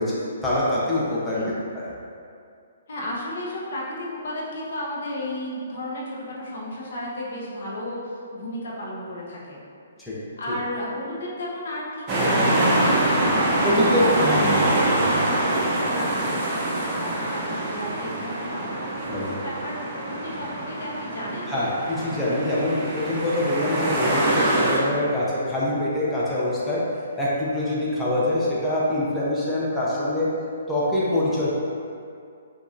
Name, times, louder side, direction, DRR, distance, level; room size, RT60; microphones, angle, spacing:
voice 1, 0.0-1.4 10.0-10.2 13.6-14.1 19.1-19.4 21.5-26.8 27.2-30.3 30.7-31.5, left 1 dB, 5° left, -9 dB, 0.7 m, -24 dB
voice 2, 2.9-9.6 10.4-21.6, left 1 dB, 60° left, -4 dB, 0.8 m, -34 dB
sound 1, 12.1-24.8, right 1 dB, 30° right, 0.7 m, -24 dB
4.9 x 2.5 x 2.5 m, 2.4 s
hypercardioid pair, 135°, 0 cm